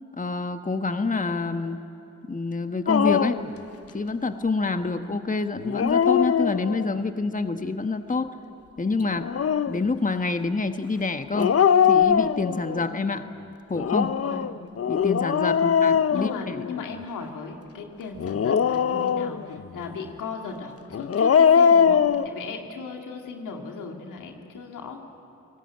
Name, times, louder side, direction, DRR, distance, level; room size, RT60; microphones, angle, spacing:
voice 1, 0.2-1.8 2.3-3.4 3.9-8.3 8.8-9.3 9.7-11.6 11.9-13.3 13.7-14.2 14.9-16.6, left 3 dB, 25° left, 8 dB, 1.4 m, -27 dB
Dog, 2.9-3.5 5.6-7.0 9.1-9.8 11.3-12.8 13.7-16.9 18.2-19.6 20.9-22.3, left 7 dB, 50° left, 0.7 m, -21 dB
voice 2, 16.1-25.0, left 5 dB, 85° left, 3 dB, 2.3 m, -36 dB
30.0 x 19.0 x 9.0 m, 2.8 s
supercardioid pair, 40°, 31 cm